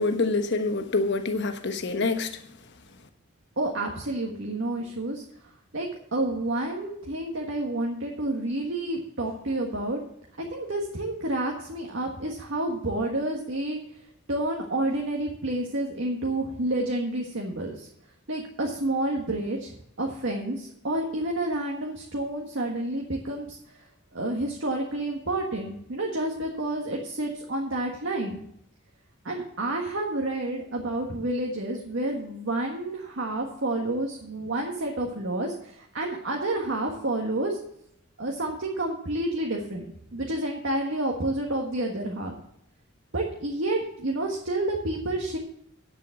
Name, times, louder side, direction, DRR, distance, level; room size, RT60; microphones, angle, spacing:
voice 1, 0.0-2.4, left 3 dB, 60° left, 8 dB, 1.2 m, -26 dB
voice 2, 3.6-5.2 5.7-10.0 10.4-13.8 14.3-17.9 18.3-23.8 24.1-28.4 29.2-37.6 38.2-39.9 40.1-42.4 43.1-45.4, right 1 dB, 65° right, 0 dB, 1.5 m, -29 dB
9.4 x 7.0 x 7.8 m, 0.75 s
head